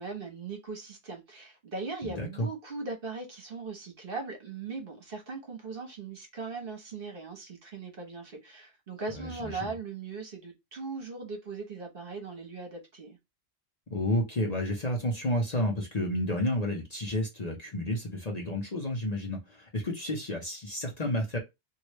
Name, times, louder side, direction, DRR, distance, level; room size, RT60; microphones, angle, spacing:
voice 1, 0.0-13.2, right 4 dB, 50° right, 1.2 m, -39 dB
voice 2, 2.0-2.5 9.1-9.7 13.9-21.4, left 1 dB, 40° left, 0.8 m, -31 dB
3.1 x 2.7 x 3.0 m
omnidirectional pair, 1.2 m